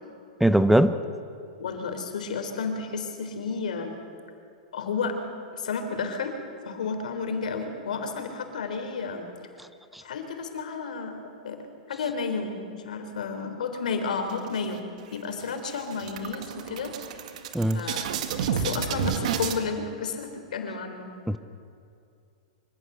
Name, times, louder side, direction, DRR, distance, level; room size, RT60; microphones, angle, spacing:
voice 1, 0.4-0.9 9.9-10.0 17.5-17.8 21.3-21.4, right 1 dB, ahead, 12 dB, 0.7 m, -20 dB
voice 2, 1.6-3.9 4.7-5.2 5.5-6.4 6.6-9.3 10.0-11.6 11.9-14.8 15.1-16.9 17.7-18.1 18.4-21.2, left 5 dB, 85° left, 6 dB, 3.7 m, -32 dB
sound 1, 14.3-15.0 15.4-15.5 15.8-19.6, right 7 dB, 65° right, 2.0 m, -30 dB
24.5 x 16.0 x 8.1 m, 2.5 s
hypercardioid pair, 135°, 4 cm